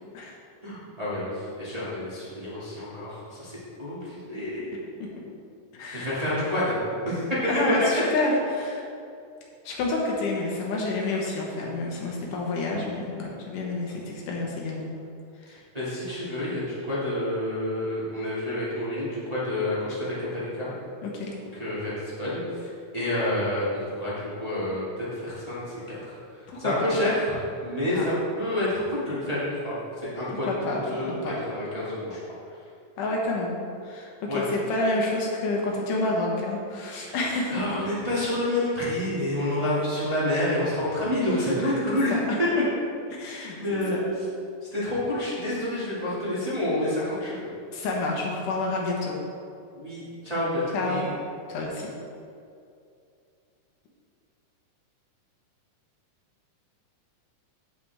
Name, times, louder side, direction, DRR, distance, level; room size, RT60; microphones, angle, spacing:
voice 1, 0.6-4.8 5.9-7.4 7.9-8.0 15.5-20.7 21.5-26.2 26.6-32.2 34.3-34.4 36.9-42.1 42.4-42.5 43.3-44.1 44.7-47.5 49.7-51.1, left 1 dB, 15° right, -10 dB, 1.8 m, -29 dB
voice 2, 5.7-6.2 7.5-8.8 9.6-14.9 15.4-15.6 21.0-21.3 26.5-26.9 27.9-28.0 30.3-31.3 33.0-33.6 33.8-37.6 41.9-42.2 43.1-44.0 47.7-49.1 50.7-51.0 51.5-51.9, left 2 dB, 80° left, -2 dB, 2.8 m, -29 dB
8.7 x 8.5 x 3.5 m, 2.4 s
omnidirectional pair, 3.7 m